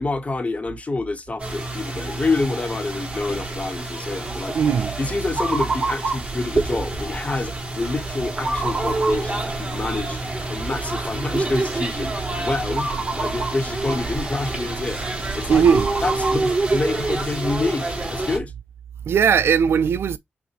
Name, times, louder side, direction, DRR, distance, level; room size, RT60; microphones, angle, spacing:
voice 1, 0.0-4.6 5.0-10.2 10.5-12.9 13.1-15.0 15.3-15.6 16.0-18.5, left 3 dB, 35° left, 1.3 m, -27 dB
sound 1, 1.4-18.4, right 2 dB, 30° right, 2.3 m, -27 dB
voice 2, 4.5-5.0 15.5-15.9 19.1-20.2, right 7 dB, 80° right, 0.5 m, -18 dB
5.8 x 2.5 x 3.1 m
cardioid pair, 55°, 4 cm